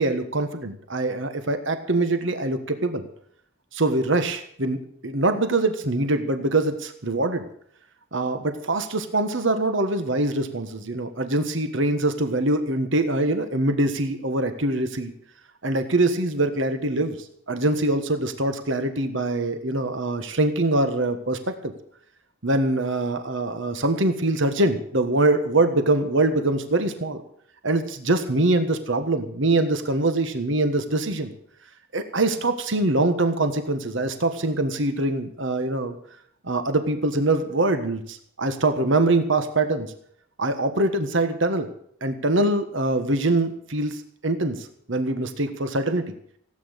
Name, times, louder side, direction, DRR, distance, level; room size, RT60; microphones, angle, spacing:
voice 1, 0.0-3.1 3.7-7.4 8.1-15.1 15.6-17.2 17.5-21.7 22.4-27.2 27.6-31.3 31.9-36.0 36.4-39.9 40.4-41.7 42.0-46.1, right 2 dB, 60° right, 9 dB, 1.5 m, -23 dB
17.0 x 8.9 x 8.1 m, 0.65 s
head